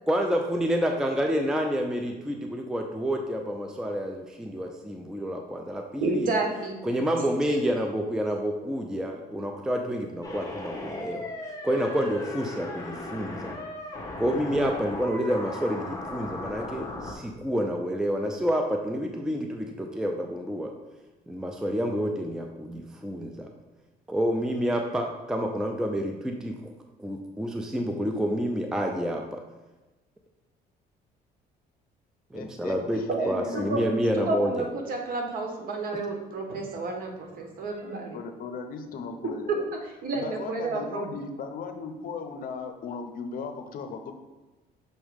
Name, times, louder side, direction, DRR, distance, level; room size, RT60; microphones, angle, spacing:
voice 1, 0.1-6.3 6.8-13.6 14.2-20.7 21.3-23.5 24.1-26.6 27.0-29.4 32.3-34.7 35.9-36.0, equal, 5° right, 3 dB, 0.4 m, -29 dB
voice 2, 6.0-6.8 33.1-33.8 34.2-38.2 40.0-41.0, right 3 dB, 60° right, 2 dB, 1.2 m, -30 dB
sound 1, 10.2-17.1, left 2 dB, 20° left, 1.1 m, -37 dB
voice 3, 32.3-34.3 38.1-39.6 40.1-44.1, left 5 dB, 55° left, 6 dB, 0.7 m, -37 dB
6.3 x 3.0 x 5.0 m, 1.2 s
cardioid pair, 110°, 17 cm